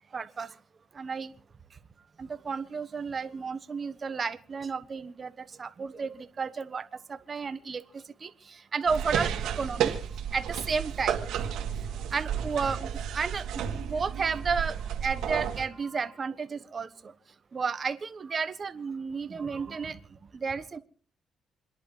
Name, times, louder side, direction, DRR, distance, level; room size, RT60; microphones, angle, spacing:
voice 1, 0.1-0.5 0.9-1.3 2.2-7.8 8.2-10.0 10.3-11.2 12.1-13.4 13.8-14.7 15.0-17.1 17.5-20.0 20.3-20.8, right 5 dB, 40° right, 10 dB, 1.3 m, -32 dB
sound 1, 8.9-15.7, right 8 dB, 85° right, 2.2 m, -32 dB
28.0 x 11.0 x 3.3 m, 0.43 s
cardioid pair, 90°, 0 cm